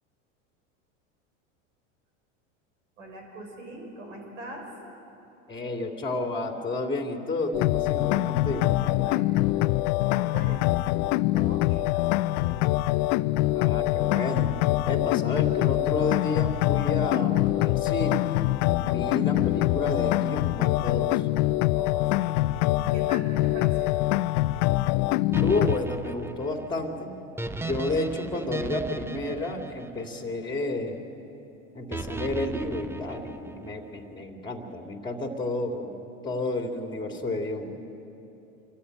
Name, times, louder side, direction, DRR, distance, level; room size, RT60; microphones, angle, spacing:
voice 1, 3.0-4.7 8.7-9.7 10.0-10.8 11.3-12.6 18.9-19.4 21.7-22.4 22.8-24.0, right 2 dB, 85° right, 2 dB, 5.9 m, -42 dB
voice 2, 5.5-8.8 13.5-14.6 14.9-18.5 18.8-21.3 25.4-27.2 27.6-31.1 31.7-35.9 36.2-37.8, left 2 dB, 10° left, 3 dB, 2.5 m, -31 dB
sound 1, 7.5-25.8, left 17 dB, 60° left, 0.6 m, -24 dB
sound 2, 25.3-30.6 31.9-33.8, right 3 dB, 5° right, 0.7 m, -36 dB
26.0 x 14.0 x 9.1 m, 2.9 s
hypercardioid pair, 100°, 38 cm